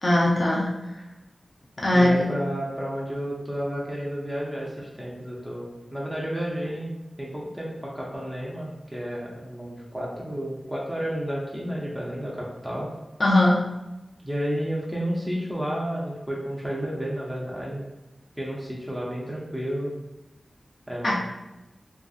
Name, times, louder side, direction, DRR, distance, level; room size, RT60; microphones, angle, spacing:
voice 1, 0.0-0.9 1.8-2.2 13.2-13.6 21.0-21.2, left 1 dB, 45° left, -5 dB, 0.5 m, -20 dB
voice 2, 1.9-6.9 7.2-12.9 14.2-17.8 18.4-19.9 20.9-21.2, equal, 5° right, -4 dB, 0.5 m, -31 dB
2.8 x 2.6 x 2.4 m, 1.0 s
wide cardioid pair, 95°, 0 cm